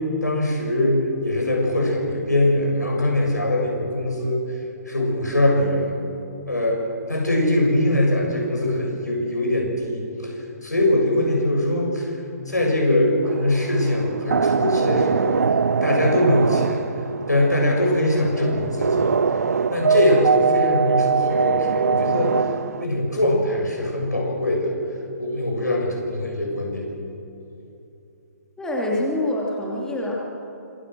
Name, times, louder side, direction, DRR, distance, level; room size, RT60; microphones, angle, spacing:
voice 1, 0.2-4.4 4.9-6.0 6.5-6.8 7.1-10.3 10.6-12.1 12.5-15.4 15.8-16.9 17.3-19.1 19.7-22.4 22.8-24.7 25.2-26.9, left 1 dB, 80° left, 0 dB, 7.4 m, -22 dB
sound 1, 13.2-22.9, right 6 dB, 60° right, 0.6 m, -22 dB
voice 2, 28.6-30.1, left 1 dB, 5° left, -4 dB, 3.1 m, -25 dB
26.5 x 22.5 x 6.4 m, 2.8 s
figure-of-eight pair, 130°, 9 cm